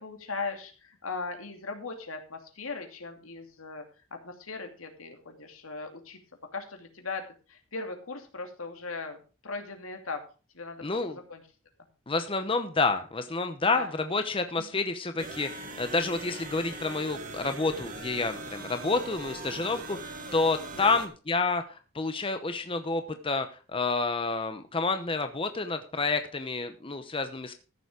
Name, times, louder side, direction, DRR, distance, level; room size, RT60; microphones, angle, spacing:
voice 1, 0.0-3.8 4.1-6.2 6.5-7.2 7.5-10.2 10.5-11.4 13.6-13.9 14.6-14.7 20.7-21.0, left 4 dB, 85° left, 4 dB, 2.6 m, -38 dB
voice 2, 10.8-11.2 12.1-27.5, left 3 dB, 25° left, 8 dB, 0.9 m, -29 dB
sound 1, 15.2-21.1, right 2 dB, 40° right, 1.8 m, -41 dB
14.0 x 7.1 x 5.0 m, 0.35 s
head